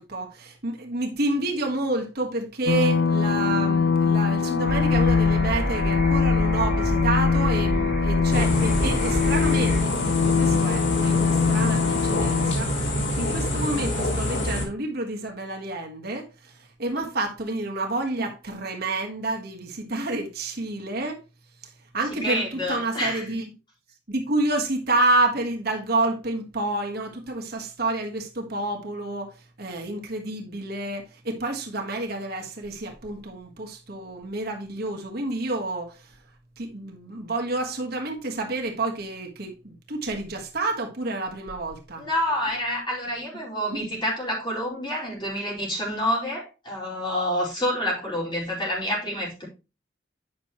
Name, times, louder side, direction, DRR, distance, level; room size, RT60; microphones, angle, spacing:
voice 1, 0.0-12.8 13.2-21.2 21.9-23.5 24.1-36.1 36.6-42.1 43.7-43.9, right 2 dB, 60° right, 1.5 m, -29 dB
sound 1, 2.7-12.5, left 5 dB, 70° left, 0.5 m, -23 dB
sound 2, 4.7-9.8, right 1 dB, 5° right, 2.5 m, -28 dB
sound 3, 8.3-14.7, left 1 dB, 90° left, 3.6 m, -27 dB
voice 2, 22.2-23.2 42.0-49.4, equal, 25° left, 4.6 m, -28 dB
9.3 x 6.1 x 3.0 m
head